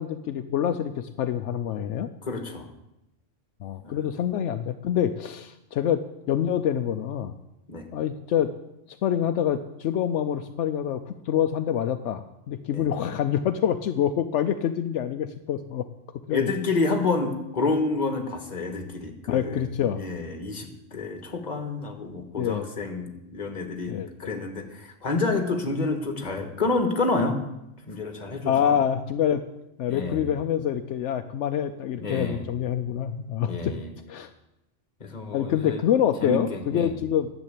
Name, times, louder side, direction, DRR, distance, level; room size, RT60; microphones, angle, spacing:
voice 1, 0.0-2.1 3.6-7.3 7.9-8.5 9.0-15.9 16.3-16.5 19.3-20.0 22.4-22.7 23.9-24.1 28.5-29.5 29.8-33.8 34.1-34.3 35.3-37.3, left 9 dB, 75° left, 9 dB, 0.9 m, -26 dB
voice 2, 2.2-2.7 3.8-4.0 7.7-7.9 12.7-12.9 16.3-19.6 19.9-23.9 24.2-27.4 27.9-28.8 29.9-30.3 32.0-32.4 33.4-33.9 35.0-35.8 36.2-36.9, left 3 dB, 35° left, 6 dB, 1.5 m, -29 dB
10.5 x 7.3 x 8.3 m, 0.89 s
omnidirectional pair, 1.2 m